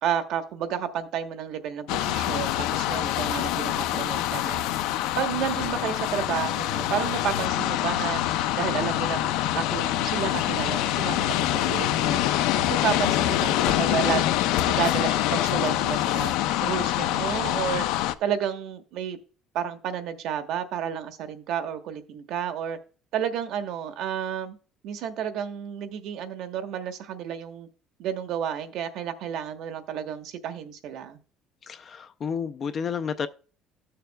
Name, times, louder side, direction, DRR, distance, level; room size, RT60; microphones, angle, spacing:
voice 1, 0.0-4.6 5.2-8.2 8.5-12.2 12.7-16.3 16.6-17.9 18.2-19.2 19.5-22.8 23.1-24.6 24.8-27.7 28.0-31.2, right 9 dB, 65° right, 1.0 m, -31 dB
sound 1, 1.9-18.1, left 13 dB, 85° left, 0.5 m, -25 dB
voice 2, 31.6-33.3, left 6 dB, 30° left, 0.4 m, -31 dB
14.0 x 6.7 x 2.2 m
cardioid pair, 160°, 0 cm